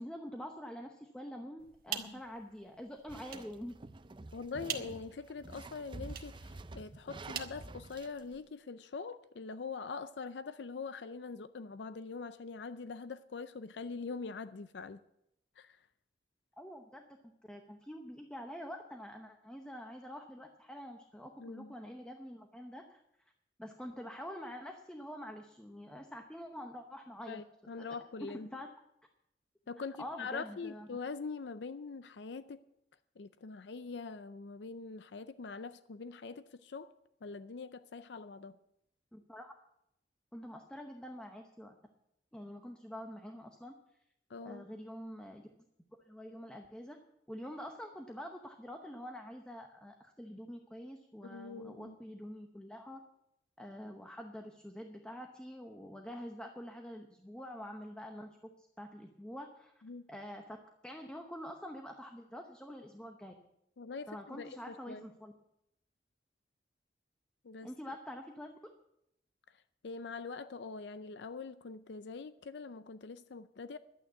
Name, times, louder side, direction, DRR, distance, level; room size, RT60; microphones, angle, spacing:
voice 1, 0.0-3.8 16.6-17.0 17.5-23.3 23.6-27.4 28.3-28.7 30.0-30.9 39.1-39.5 40.3-41.8 42.3-43.7 44.4-45.5 46.0-47.0 47.3-53.0 53.6-59.7 60.1-60.6 60.8-63.3 64.1-65.3 67.6-68.5, equal, 5° left, 0.8 m, -46 dB
sound 1, 1.6-8.4, right 9 dB, 55° right, 1.4 m, -47 dB
sound 2, 3.1-8.2, right 2 dB, 30° right, 0.5 m, -48 dB
voice 2, 4.3-15.0 15.6-15.8 21.4-21.7 27.3-28.5 29.7-32.6 33.2-36.9 37.2-38.6 44.3-44.7 51.2-52.0 59.8-60.1 63.8-65.1 67.4-67.7 69.8-73.8, left 4 dB, 75° left, 0.5 m, -43 dB
11.5 x 9.0 x 8.1 m
head